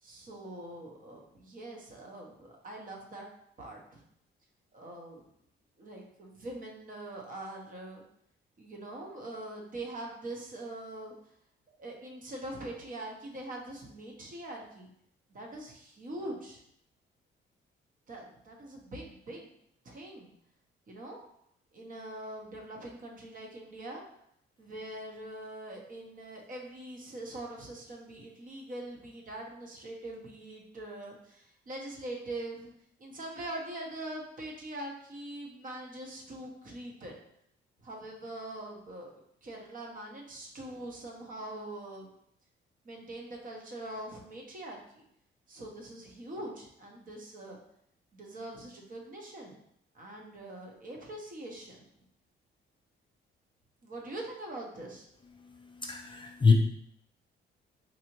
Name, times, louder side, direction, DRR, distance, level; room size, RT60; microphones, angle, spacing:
voice 1, 0.0-3.3 3.6-4.0 4.7-5.3 5.8-8.0 8.6-11.1 11.8-14.9 15.3-16.6 18.1-19.5 19.8-20.3 20.9-21.2 21.7-24.0 24.6-32.7 33.0-37.2 37.8-42.1 42.8-45.0 45.5-47.6 48.1-49.6 49.9-51.8 53.8-55.1, right 1 dB, 45° right, 0 dB, 1.0 m, -43 dB
voice 2, 55.4-56.5, left 4 dB, 25° left, 2 dB, 0.4 m, -26 dB
4.1 x 2.7 x 3.0 m, 0.72 s
cardioid pair, 90°, 20 cm